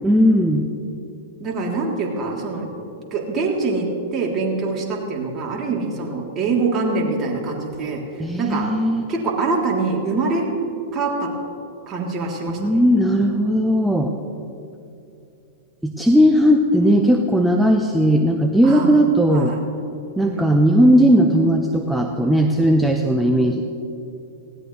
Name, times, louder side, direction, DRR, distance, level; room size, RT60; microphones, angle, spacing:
voice 1, 0.0-0.7 8.2-9.1 12.5-14.1 15.8-19.6 20.2-23.6, equal, 5° right, 3 dB, 0.9 m, -17 dB
voice 2, 1.4-2.7 3.1-3.8 4.1-8.0 8.4-8.7 9.1-10.4 10.9-11.3 11.9-12.8 18.6-19.0 19.3-19.6 20.1-20.6, right 3 dB, 30° right, -1 dB, 3.3 m, -24 dB
19.0 x 17.5 x 3.3 m, 2.7 s
figure-of-eight pair, 105°, 0 cm